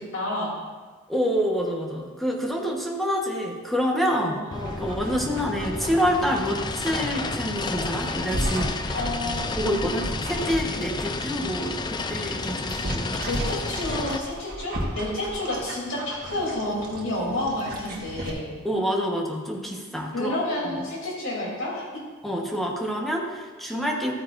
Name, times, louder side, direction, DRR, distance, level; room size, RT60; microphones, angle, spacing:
voice 1, 0.1-0.5 4.2-4.4 8.9-9.5 12.7-12.9 13.3-18.5 20.1-21.8, left 1 dB, 75° left, -4 dB, 3.1 m, -30 dB
voice 2, 1.1-9.0 9.6-13.2 18.6-20.4 20.6-20.8 22.2-24.1, equal, ahead, -1 dB, 1.1 m, -27 dB
sound 1, 4.5-14.2, left 3 dB, 20° left, 0.4 m, -31 dB
Dog, 4.5-18.3, right 1 dB, 45° right, 1.5 m, -35 dB
13.5 x 9.3 x 2.6 m, 1.5 s
head